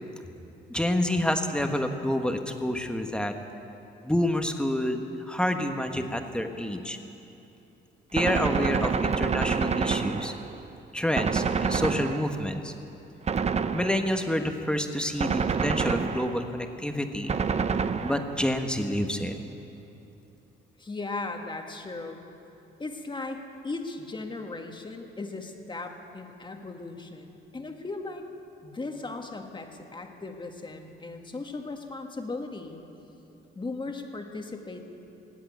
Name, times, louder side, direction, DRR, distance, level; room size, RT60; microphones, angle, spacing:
voice 1, 0.7-3.3 4.0-7.0 8.1-10.3 10.9-12.7 13.7-17.3 18.0-19.4, left 1 dB, 5° left, 5 dB, 1.2 m, -28 dB
Gunshot gunfire, 8.2-10.7 11.2-12.6 13.3-14.3 15.2-16.6 17.3-18.5, right 5 dB, 35° right, 0.6 m, -28 dB
voice 2, 20.8-22.2 22.8-28.3 28.6-32.8 33.6-34.8, left 3 dB, 25° left, 3 dB, 1.7 m, -37 dB
19.0 x 8.1 x 9.2 m, 2.9 s
cardioid pair, 90°, 20 cm